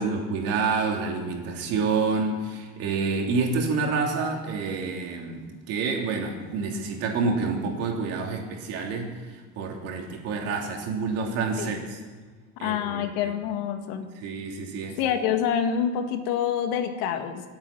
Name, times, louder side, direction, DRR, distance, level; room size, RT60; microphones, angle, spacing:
voice 1, 0.0-12.0 12.6-13.3 14.2-15.0, right 4 dB, 55° right, 1 dB, 3.1 m, -28 dB
voice 2, 12.6-14.1 15.0-17.4, left 8 dB, 80° left, 7 dB, 1.8 m, -27 dB
26.0 x 8.7 x 6.0 m, 1.4 s
cardioid pair, 165°, 29 cm